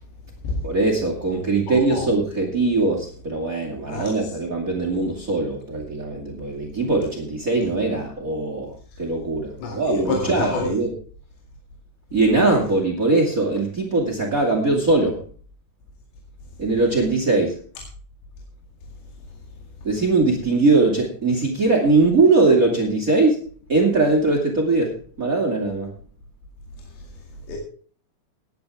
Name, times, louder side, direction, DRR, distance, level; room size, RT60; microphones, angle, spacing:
voice 1, 0.6-8.7 9.0-10.9 12.1-15.2 16.6-17.6 19.8-23.4 23.7-25.9, right 3 dB, 55° right, 0.9 m, -21 dB
voice 2, 1.7-2.1 3.8-4.3 9.6-10.8 27.5-27.6, left 4 dB, 60° left, 4.2 m, -28 dB
18.0 x 10.5 x 3.5 m
omnidirectional pair, 5.9 m